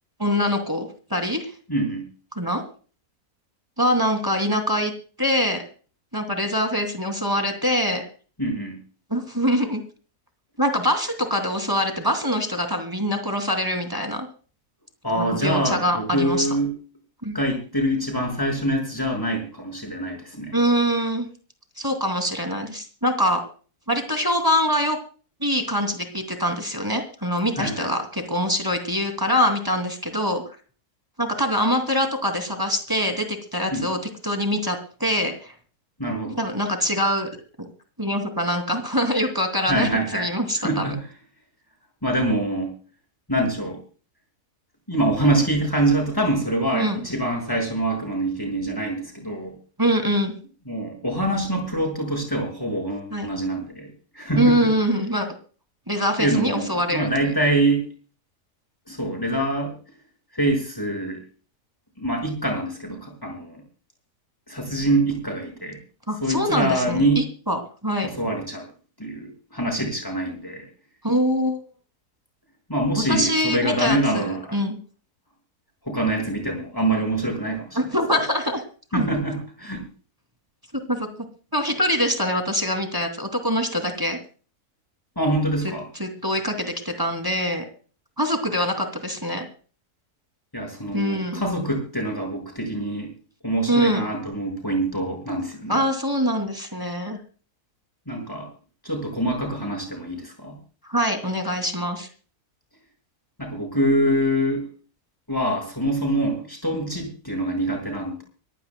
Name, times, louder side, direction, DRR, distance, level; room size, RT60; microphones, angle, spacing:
voice 1, 0.2-1.5 2.4-2.6 3.8-4.9 5.2-5.6 6.1-8.0 9.1-9.8 10.6-14.3 15.1-16.5 17.2-17.4 20.5-21.3 21.8-23.4 23.9-25.0 25.4-30.4 31.2-35.5 36.4-37.3 37.6-37.7 38.0-40.9 46.7-47.0 49.8-50.3 53.1-53.3 54.4-55.3 55.9-57.3 66.1-68.1 71.0-71.6 73.1-74.8 77.7-78.6 78.9-79.1 80.9-81.1 81.5-84.2 86.0-87.6 88.2-89.5 90.9-91.4 93.7-94.0 95.7-97.2 100.9-102.1, equal, 15° right, 5 dB, 2.9 m, -24 dB
voice 2, 1.7-2.1 8.4-8.8 15.0-16.7 17.3-20.6 27.6-27.9 33.7-33.9 36.0-36.4 39.7-40.3 40.6-41.0 42.0-42.7 43.3-43.8 44.9-49.6 50.7-54.7 56.2-57.8 58.9-59.7 60.3-61.2 62.0-63.6 64.5-65.8 66.2-67.3 68.0-68.7 69.0-70.7 72.7-74.6 75.8-78.0 78.9-79.8 85.2-85.9 90.5-93.1 93.4-95.8 98.1-98.5 98.8-100.6 103.4-104.7 105.3-108.2, right 1 dB, 15° left, 1 dB, 6.0 m, -25 dB
24.5 x 16.0 x 2.3 m, 0.39 s
omnidirectional pair, 1.6 m